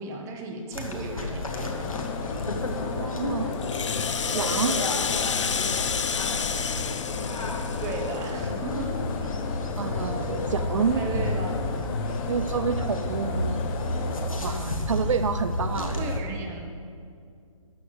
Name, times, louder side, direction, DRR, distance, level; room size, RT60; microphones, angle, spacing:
voice 1, 0.0-1.8 7.8-9.4 10.8-11.5 16.0-16.6, right 3 dB, 15° right, 2 dB, 1.1 m, -35 dB
sound 1, 0.7-16.2, left 1 dB, 85° left, 1.5 m, -31 dB
sound 2, 1.5-14.3, left 7 dB, 15° left, 0.5 m, -35 dB
voice 2, 2.8-3.6 4.3-4.8 9.8-11.0 12.3-13.6 14.4-16.0, right 6 dB, 65° right, 11 dB, 0.5 m, -28 dB
Rattle (instrument), 3.5-8.3, left 6 dB, 65° left, 0.6 m, -30 dB
13.0 x 4.8 x 7.5 m, 2.4 s
figure-of-eight pair, 140°, 17 cm